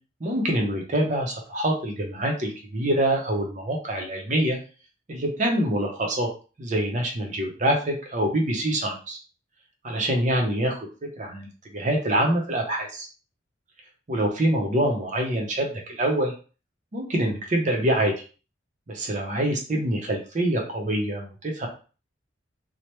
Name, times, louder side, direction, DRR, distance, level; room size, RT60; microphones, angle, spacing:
voice 1, 0.2-4.6 5.1-6.3 6.6-9.2 9.8-10.8 11.2-13.1 14.1-16.3 16.9-18.1 18.9-21.7, right 1 dB, 40° right, 1 dB, 0.6 m, -25 dB
2.9 x 2.1 x 3.2 m, 0.35 s
head